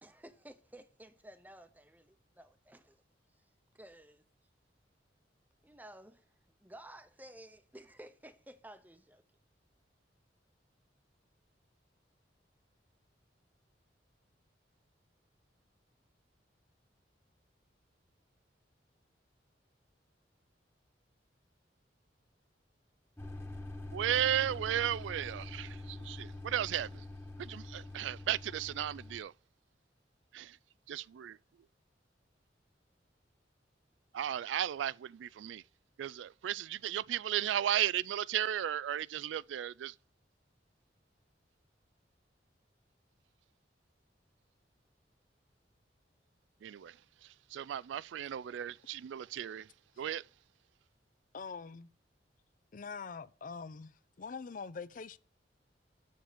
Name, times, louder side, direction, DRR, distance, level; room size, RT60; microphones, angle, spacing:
voice 1, 0.0-3.0 3.7-4.2 5.6-6.3 6.6-9.2, right 1 dB, 10° right, 0.8 m, -54 dB
sound 1, 23.2-29.2, left 2 dB, 15° left, 1.2 m, -45 dB
voice 2, 23.9-27.0 27.4-29.3 30.3-30.6 30.9-31.4 34.1-35.6 36.0-39.9 46.6-46.9 47.5-49.7 50.0-50.2, right 10 dB, 85° right, 0.3 m, -35 dB
voice 3, 51.3-51.9 52.7-55.2, left 5 dB, 45° left, 0.5 m, -44 dB
7.4 x 7.1 x 5.0 m
head